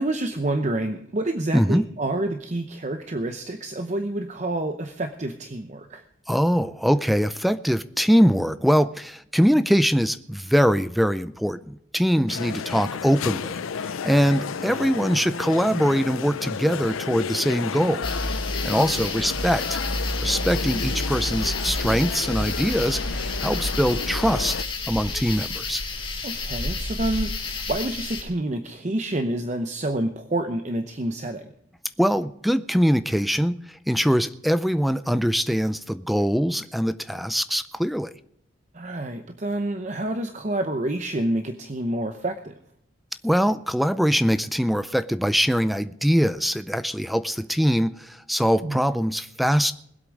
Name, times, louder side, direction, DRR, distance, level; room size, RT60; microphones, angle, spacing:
voice 1, 0.0-6.0 12.2-12.6 18.8-19.4 25.9-31.5 38.7-42.5 48.6-48.8, right 1 dB, 35° right, 8 dB, 0.8 m, -28 dB
voice 2, 1.5-1.8 6.3-13.5 13.8-18.1 18.6-19.8 20.2-24.6 24.9-25.8 32.0-33.6 33.9-38.1 43.2-49.7, equal, ahead, 13 dB, 0.4 m, -22 dB
sound 1, 12.3-24.6, left 6 dB, 80° left, 0.5 m, -32 dB
sound 2, 18.0-28.2, left 2 dB, 25° left, 2.3 m, -30 dB
20.5 x 8.2 x 5.2 m, 0.72 s
head